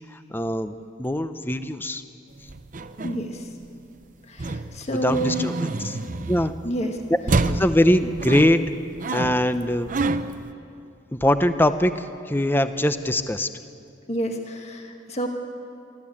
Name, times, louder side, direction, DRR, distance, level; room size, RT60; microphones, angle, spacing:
voice 1, 0.3-0.7 1.0-2.0 4.9-6.0 6.3-6.5 7.1-7.2 7.5-8.6 9.1-9.9 11.1-11.9 12.3-13.5, left 1 dB, 10° left, 10 dB, 0.6 m, -22 dB
sound 1, 2.4-3.8 4.4-6.8 7.3-10.5, right 2 dB, 40° right, 0.7 m, -28 dB
voice 2, 3.0-3.4 4.3-5.5 6.6-7.0 14.1-15.3, right 1 dB, 35° left, 3 dB, 1.8 m, -28 dB
24.0 x 14.0 x 8.6 m, 2.5 s
head